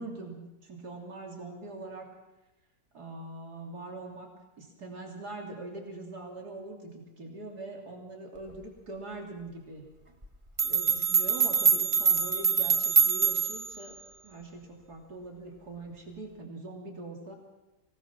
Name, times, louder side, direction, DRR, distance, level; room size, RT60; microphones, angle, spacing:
voice 1, 0.0-2.1 2.9-4.3 4.6-9.9 10.6-14.0 14.2-17.4, right 2 dB, 70° right, 0 dB, 3.6 m, -42 dB
sound 1, 10.2-10.3 10.6-13.7, right 5 dB, 20° right, 1.4 m, -24 dB
25.5 x 18.5 x 5.9 m, 1.0 s
omnidirectional pair, 1.8 m